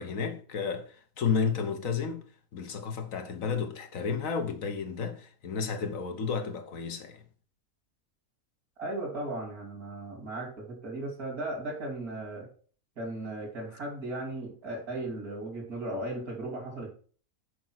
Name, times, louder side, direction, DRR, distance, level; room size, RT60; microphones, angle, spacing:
voice 1, 0.0-2.2 2.5-7.2, left 6 dB, 70° left, 1.5 m, -32 dB
voice 2, 8.8-12.5 13.0-16.9, right 2 dB, 90° right, 3.1 m, -36 dB
6.7 x 5.2 x 6.1 m
omnidirectional pair, 1.5 m